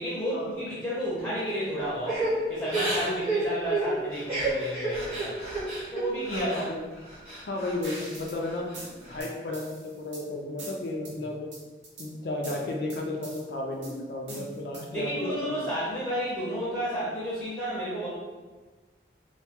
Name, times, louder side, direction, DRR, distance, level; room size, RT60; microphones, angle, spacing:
voice 1, 0.0-2.2 2.5-5.4 5.9-6.7 14.9-18.1, equal, 5° left, -8 dB, 0.5 m, -31 dB
Crying sobbing / Breathing, 2.0-6.7 7.0-8.0 8.4-9.2, right 2 dB, 35° right, 0.8 m, -31 dB
voice 2, 6.3-6.8 7.5-8.7 9.1-11.5 12.0-15.6, left 2 dB, 60° left, 0 dB, 0.3 m, -33 dB
sound 1, 7.8-8.4 8.7-10.2 10.6-11.1 11.5-12.1 12.4-13.4 13.8-15.0, right 1 dB, 90° right, 0.8 m, -42 dB
2.2 x 2.2 x 2.8 m, 1.3 s
head